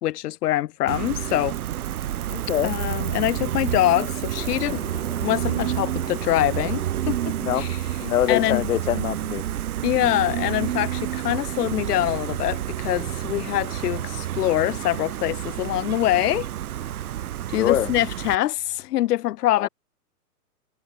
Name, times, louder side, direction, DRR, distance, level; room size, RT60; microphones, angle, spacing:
voice 1, 0.0-1.6 2.6-4.8 5.2-7.8 8.3-8.6 9.8-16.5 17.5-19.7, left 14 dB, 80° left, 0.6 m, -24 dB
Gull seagull, 0.9-18.3, right 12 dB, 70° right, 1.0 m, -29 dB
voice 2, 2.2-2.7 7.4-7.7 8.0-9.4 17.6-17.9 19.6-19.7, left 12 dB, 60° left, 1.1 m, -24 dB
sound 1, 4.3-14.5, left 6 dB, 10° left, 5.0 m, -47 dB
sound 2, 9.8-18.9, right 19 dB, 40° right, 5.9 m, -53 dB
hypercardioid pair, 145°, 46 cm